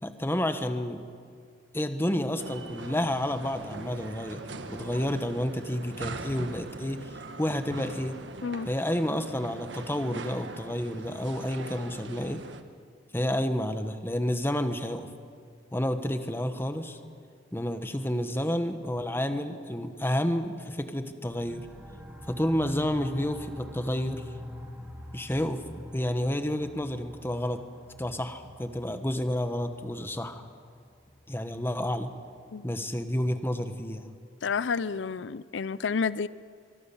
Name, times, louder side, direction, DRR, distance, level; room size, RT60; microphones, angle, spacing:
voice 1, 0.0-1.0 1.7-7.0 7.4-8.2 8.6-12.4 13.1-15.1 15.7-17.0 17.5-21.7 22.3-24.2 25.1-25.6 25.9-27.6 28.0-30.4 31.3-32.1 32.6-34.1, left 1 dB, 15° left, 8 dB, 1.3 m, -30 dB
sound 1, 2.4-12.6, right 2 dB, 80° right, 1.5 m, -42 dB
sound 2, 21.2-32.6, left 1 dB, 10° right, 2.8 m, -46 dB
voice 2, 34.4-36.3, left 5 dB, 90° left, 17 dB, 0.5 m, -30 dB
24.5 x 24.0 x 7.2 m, 2.2 s
head